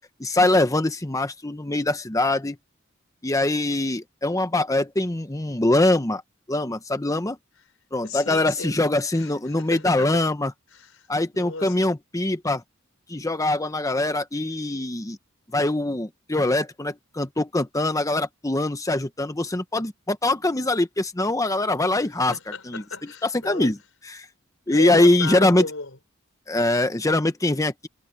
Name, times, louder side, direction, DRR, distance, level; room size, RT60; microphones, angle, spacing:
voice 1, 0.2-2.6 3.2-6.2 6.5-7.4 7.9-10.5 11.1-12.6 13.1-15.2 15.5-22.3 22.7-22.8 23.2-23.8 24.1-24.3 24.7-25.6 26.5-27.9, left 2 dB, 15° left, 0.9 m, -23 dB
voice 2, 8.0-8.8 9.1-10.2 10.7-11.1 11.3-11.8 22.3-23.7 24.7-26.0, left 3 dB, 70° left, 4.9 m, -35 dB
head